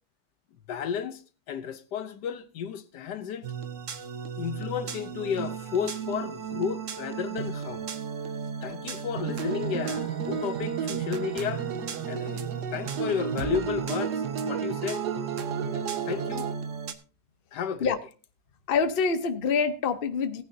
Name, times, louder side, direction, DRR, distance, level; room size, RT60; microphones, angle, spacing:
voice 1, 0.7-1.2 1.5-3.5 4.4-7.9 8.6-11.7 12.1-15.0 15.7-16.5 17.5-17.9, left 7 dB, 85° left, 1.5 m, -33 dB
sound 1, 3.4-16.9, right 7 dB, 55° right, 1.2 m, -36 dB
sound 2, 9.2-16.5, right 7 dB, 75° right, 1.4 m, -33 dB
voice 2, 18.7-20.4, left 5 dB, 40° left, 0.9 m, -26 dB
18.0 x 9.5 x 2.7 m
omnidirectional pair, 1.8 m